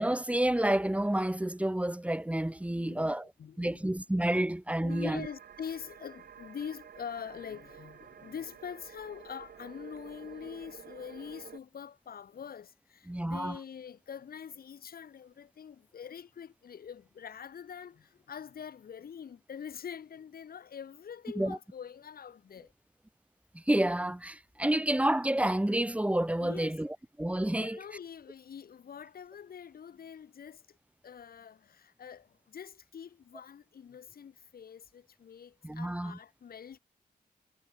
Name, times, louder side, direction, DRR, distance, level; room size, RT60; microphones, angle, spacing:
voice 1, 0.0-3.3 3.6-5.3 13.1-13.6 21.4-21.6 23.5-27.8 35.6-36.2, right 1 dB, 10° right, 2.2 m, -29 dB
voice 2, 2.7-3.1 3.4-3.9 4.8-22.7 26.4-26.7 27.6-30.8 31.0-36.8, left 8 dB, 75° left, 2.7 m, -44 dB
sound 1, 4.9-11.6, right 8 dB, 85° right, 6.8 m, -51 dB
cardioid pair, 85°, 16 cm